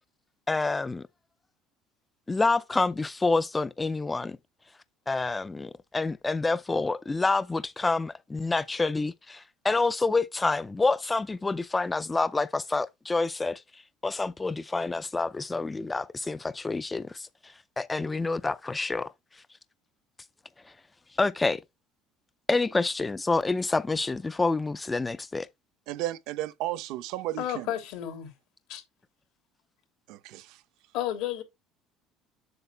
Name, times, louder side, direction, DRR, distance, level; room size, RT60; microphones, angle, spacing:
voice 1, 0.5-1.0 2.3-4.4 5.1-13.6 14.0-19.1 21.2-21.6 22.5-25.5, left 3 dB, 15° left, 0.4 m, -28 dB
voice 2, 25.9-27.7 30.1-30.6, right 15 dB, 75° right, 0.8 m, -34 dB
voice 3, 27.4-28.3 28.7-28.8 30.9-31.4, left 11 dB, 75° left, 3.1 m, -32 dB
7.9 x 6.7 x 3.3 m
supercardioid pair, 105°, 0 cm